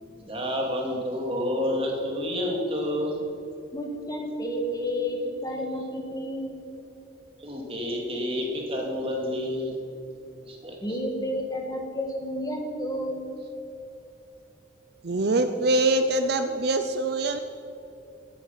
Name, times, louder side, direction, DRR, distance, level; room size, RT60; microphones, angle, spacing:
voice 1, 0.0-3.2 7.4-9.8 10.4-11.0, left 1 dB, 30° right, 0 dB, 2.5 m, -29 dB
voice 2, 3.7-6.6 10.8-13.3, equal, 20° left, 2 dB, 1.7 m, -31 dB
voice 3, 15.0-17.4, right 2 dB, 60° right, 8 dB, 0.6 m, -24 dB
16.5 x 9.8 x 5.8 m, 2.8 s
head